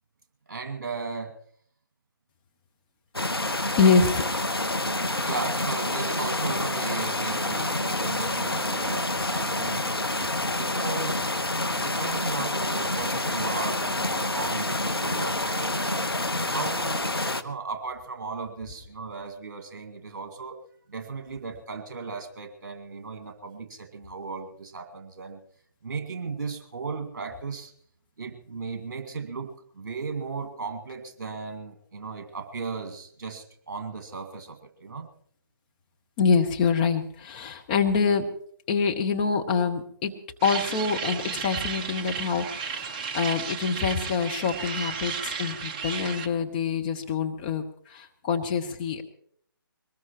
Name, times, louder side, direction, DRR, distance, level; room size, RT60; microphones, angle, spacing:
voice 1, 0.5-1.4 5.2-11.3 11.7-16.1 16.5-20.6 20.9-25.4 25.8-27.7 28.2-29.5 29.7-35.1, right 4 dB, 50° right, 7 dB, 2.0 m, -36 dB
sound 1, 3.1-17.4, left 2 dB, 85° left, 1.0 m, -28 dB
voice 2, 3.8-4.2 36.2-38.3 38.7-40.2 40.4-49.0, left 5 dB, 20° left, 3 dB, 0.9 m, -25 dB
sound 2, 40.4-46.3, right 6 dB, 20° right, 0.6 m, -33 dB
22.5 x 19.5 x 3.0 m, 0.63 s
figure-of-eight pair, 140°, 12 cm